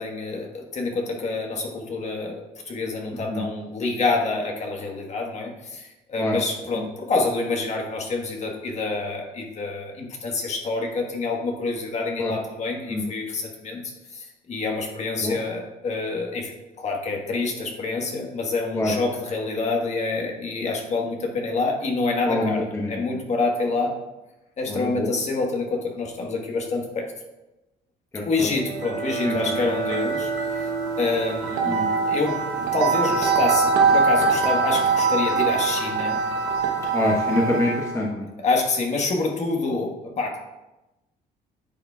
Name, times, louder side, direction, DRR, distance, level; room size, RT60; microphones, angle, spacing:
voice 1, 0.0-16.5 16.8-23.9 24.6-27.1 28.2-30.7 31.0-36.2 38.4-40.4, left 3 dB, 40° left, 1 dB, 1.4 m, -27 dB
voice 2, 24.7-25.1 28.1-28.2 29.2-29.3 31.7-31.8 36.9-38.3, left 1 dB, 15° left, -2 dB, 1.1 m, -25 dB
sound 1, 28.5-38.0, right 4 dB, 85° right, 1.0 m, -23 dB
10.0 x 6.6 x 2.4 m, 1.0 s
cardioid pair, 110°, 17 cm